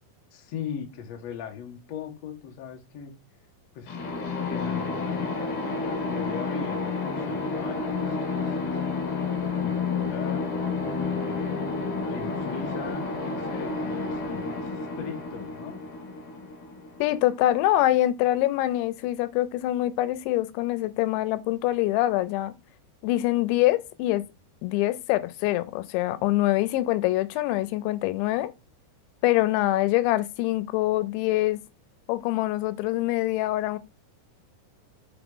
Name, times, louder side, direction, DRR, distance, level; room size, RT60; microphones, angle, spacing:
voice 1, 0.3-3.1 3.7-4.0 4.5-8.8 9.4-10.5 11.0-11.6 12.1-15.8, left 7 dB, 65° left, 1.6 m, -39 dB
sound 1, 3.9-17.5, left 4 dB, 50° left, 2.3 m, -30 dB
voice 2, 17.0-22.5 23.0-24.2 24.6-28.5 29.2-31.6 32.1-33.8, left 15 dB, 90° left, 3.0 m, -24 dB
6.5 x 5.0 x 3.7 m
omnidirectional pair, 5.1 m